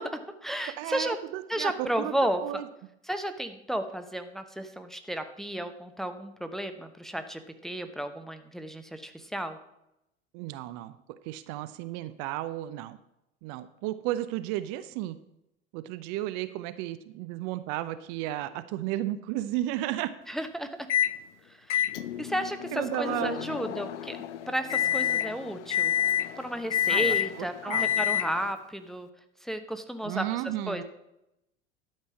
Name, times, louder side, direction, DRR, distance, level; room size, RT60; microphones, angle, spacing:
voice 1, 0.0-1.2 1.5-2.6 3.1-9.6 20.3-20.9 22.2-24.2 24.5-25.9 26.4-29.1 29.4-30.3 30.7-30.8, right 1 dB, ahead, 8 dB, 0.9 m, -33 dB
voice 2, 0.8-2.1 2.4-2.7 10.3-13.0 13.4-15.2 15.7-20.1 22.7-23.5 26.9-27.9 30.0-30.8, right 14 dB, 50° right, 12 dB, 0.8 m, -33 dB
Microwave oven, 20.9-21.2 21.7-28.5, left 11 dB, 75° left, 0.6 m, -29 dB
12.0 x 5.5 x 7.1 m, 0.85 s
hypercardioid pair, 80°, 35 cm